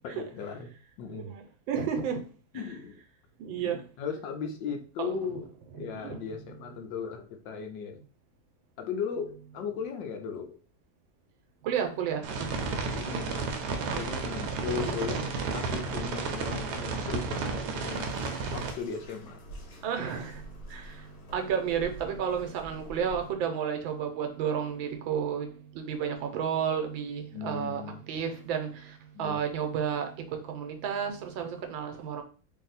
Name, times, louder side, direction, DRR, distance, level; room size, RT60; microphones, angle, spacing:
voice 1, 0.0-1.3 2.5-3.0 3.6-5.5 5.7-8.0 8.8-10.6 12.9-13.5 13.9-18.1 18.5-19.4 27.3-28.0 29.1-29.4, left 6 dB, 75° left, 4 dB, 1.3 m, -37 dB
voice 2, 1.7-2.2 3.4-3.8 5.0-5.2 5.8-6.2 11.6-12.5 13.8-14.0 14.6-14.9 19.8-20.4 20.7-21.0 21.3-25.5 25.7-30.1 30.4-32.2, right 7 dB, 85° right, 5 dB, 1.4 m, -32 dB
sound 1, 12.2-18.7, right 4 dB, 70° right, 1.1 m, -32 dB
Bathtub (filling or washing), 17.9-23.3, equal, 55° left, 1.4 m, -47 dB
3.4 x 2.7 x 3.9 m, 0.38 s
omnidirectional pair, 2.1 m